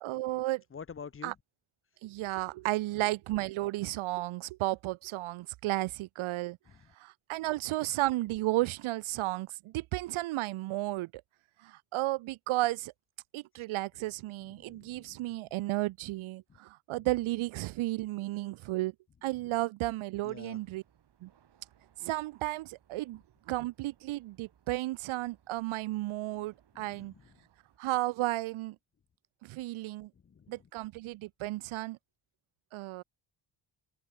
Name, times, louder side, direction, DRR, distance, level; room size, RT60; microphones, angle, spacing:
voice 1, 0.0-0.6 1.2-1.3 2.0-6.6 7.0-11.2 11.6-12.9 13.3-18.9 19.2-20.8 21.2-21.3 22.0-23.2 23.5-27.1 27.8-28.8 29.4-30.1 30.5-32.0 32.7-33.0, right 18 dB, 90° right, 0.5 m, -33 dB
voice 2, 0.7-1.4 6.7-6.9 13.6-13.7 14.4-15.4 16.5-16.6 20.2-20.6 26.7-27.5 30.1-30.7, left 6 dB, 30° left, 0.8 m, -49 dB
sound 1, 20.3-27.8, right 9 dB, 60° right, 3.9 m, -67 dB
open air
wide cardioid pair, 175°, 47 cm